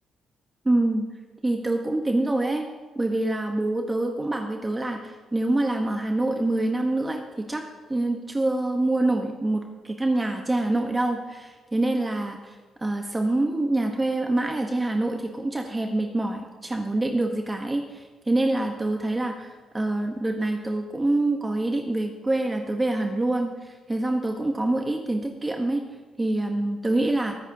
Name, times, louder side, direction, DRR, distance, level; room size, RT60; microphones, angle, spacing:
voice 1, 0.6-1.0 1.4-2.7 3.0-7.6 7.9-12.5 12.8-23.5 23.9-25.8 26.2-27.4, right 2 dB, 15° right, 3 dB, 0.9 m, -25 dB
22.0 x 8.1 x 2.7 m, 1.3 s
cardioid pair, 90°, 0 cm